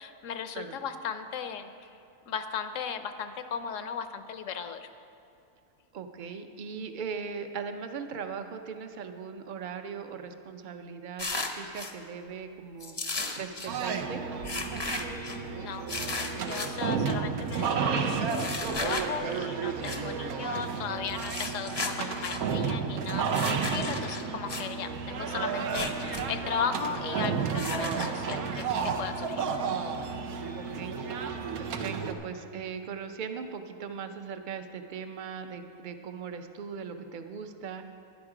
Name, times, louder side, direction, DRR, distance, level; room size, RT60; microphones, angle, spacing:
voice 1, 0.0-1.9 2.3-4.8 15.3-29.5, left 7 dB, 65° left, 9 dB, 1.0 m, -36 dB
voice 2, 5.9-11.3 11.6-12.9 13.3-14.2 30.6-31.0 31.6-37.8, right 6 dB, 50° right, 7 dB, 0.6 m, -39 dB
sound 1, 11.2-11.9 12.8-13.7 14.4-15.4 15.9-16.7 18.3-19.1 19.8-20.0 21.1-22.4 23.3-24.7 25.6-26.2 26.5-26.6 27.6-28.6, left 3 dB, 25° left, 0.5 m, -35 dB
sound 2, 13.7-32.1, right 5 dB, 85° right, 1.2 m, -32 dB
12.5 x 10.5 x 4.9 m, 2.7 s
omnidirectional pair, 1.5 m